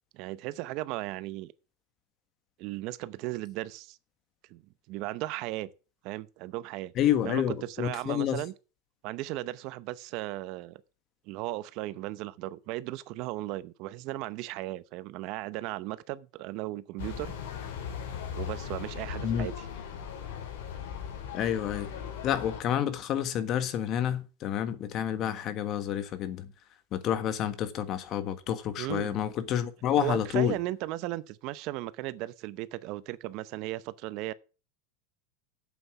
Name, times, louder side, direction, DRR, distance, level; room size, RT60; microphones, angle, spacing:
voice 1, 0.1-1.5 2.6-4.0 4.5-4.6 4.9-5.7 6.0-6.9 7.2-8.5 9.0-10.8 11.3-17.3 18.4-19.5 28.8-29.2 30.0-34.3, right 17 dB, 55° right, 0.7 m, -36 dB
voice 2, 7.0-8.4 19.2-19.5 21.3-21.9 22.2-26.5 26.9-30.6, left 10 dB, 40° left, 1.4 m, -29 dB
sound 1, 17.0-22.6, left 7 dB, 75° left, 4.0 m, -38 dB
8.2 x 7.7 x 5.9 m
supercardioid pair, 130°, 0 cm